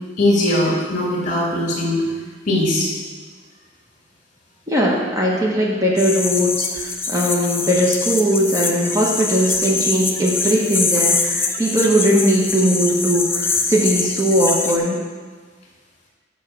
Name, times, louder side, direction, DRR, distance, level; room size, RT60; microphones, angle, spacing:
voice 1, 0.2-2.0 2.5-2.9, left 1 dB, 40° left, -3 dB, 2.2 m, -19 dB
voice 2, 4.7-15.0, equal, 15° right, -4 dB, 1.0 m, -19 dB
sound 1, 6.0-14.8, left 4 dB, 15° left, 0.5 m, -23 dB
7.1 x 5.6 x 6.1 m, 1.5 s
head